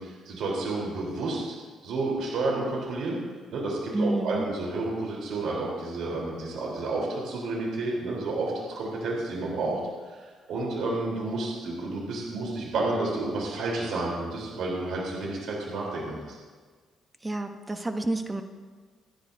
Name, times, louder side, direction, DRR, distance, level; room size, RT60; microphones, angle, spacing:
voice 1, 0.0-1.6 1.8-3.2 3.5-16.4, right 2 dB, 80° right, -3 dB, 3.7 m, -30 dB
voice 2, 3.9-4.5 17.2-18.4, right 2 dB, 15° right, 6 dB, 1.0 m, -29 dB
27.0 x 10.5 x 2.7 m, 1.5 s
cardioid pair, 90°, 0 cm